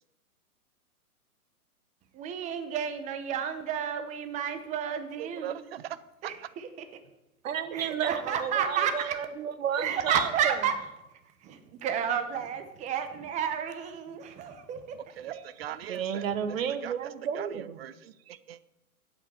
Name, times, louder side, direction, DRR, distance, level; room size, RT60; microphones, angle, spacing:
voice 1, 2.1-5.6 6.2-6.7 7.7-9.1 9.8-10.7 11.4-14.8, right 8 dB, 15° right, 9 dB, 0.9 m, -31 dB
voice 2, 5.2-6.0 6.2-6.3 14.9-16.3 16.7-16.9 17.3-18.6, right 12 dB, 45° right, 16 dB, 0.6 m, -40 dB
voice 3, 7.4-10.7 15.9-17.8, right 8 dB, 60° right, 12 dB, 1.3 m, -32 dB
8.6 x 8.1 x 7.1 m, 0.94 s
hypercardioid pair, 135°, 45 cm